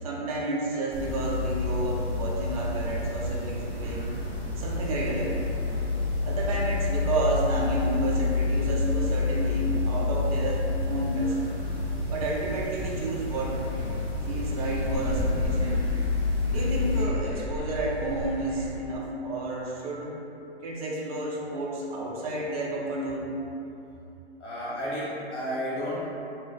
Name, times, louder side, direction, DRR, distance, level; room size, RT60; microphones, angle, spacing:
voice 1, 0.0-4.1 4.6-5.5 6.2-11.4 12.1-13.6 14.3-15.9 16.5-20.1 20.6-23.5, right 2 dB, 35° right, -3 dB, 0.4 m, -31 dB
sound 1, 0.9-17.0, left 3 dB, 10° right, 0.8 m, -29 dB
sound 2, 13.3-18.8, equal, 15° left, 1.0 m, -34 dB
voice 2, 24.4-26.0, equal, 80° left, -10 dB, 1.2 m, -32 dB
2.5 x 2.1 x 2.4 m, 2.8 s
hypercardioid pair, 130°, 34 cm